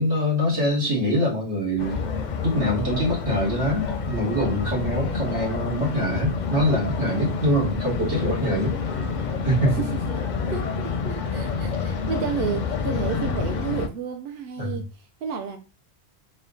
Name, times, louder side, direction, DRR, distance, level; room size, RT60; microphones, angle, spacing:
voice 1, 0.0-2.0 2.4-8.8 9.4-9.8 14.6-14.8, equal, 85° right, 2.3 m, -24 dB
sound 1, 1.8-13.9, left 5 dB, 55° left, 0.5 m, -28 dB
voice 2, 10.5-15.6, right 6 dB, 65° right, 0.8 m, -31 dB
4.2 x 2.3 x 3.7 m
omnidirectional pair, 1.1 m